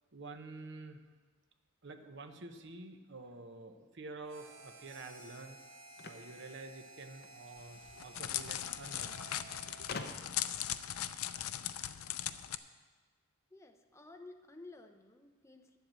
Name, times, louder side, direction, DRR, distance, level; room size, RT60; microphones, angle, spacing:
voice 1, 0.1-1.0 1.8-5.6 6.0-9.2 9.8-10.0, right 3 dB, 55° right, 6 dB, 0.9 m, -49 dB
Harmonica, 4.3-10.3, right 2 dB, 75° right, 1.4 m, -55 dB
sound 1, 6.0-7.4 8.5-8.6 8.8-8.9 9.9-10.5, left 4 dB, 45° left, 0.7 m, -45 dB
Crackle, 7.6-12.6, left 11 dB, 85° left, 0.5 m, -39 dB
voice 2, 13.5-15.8, left 2 dB, 15° left, 5 dB, 0.7 m, -54 dB
10.5 x 8.0 x 7.5 m, 1.4 s
head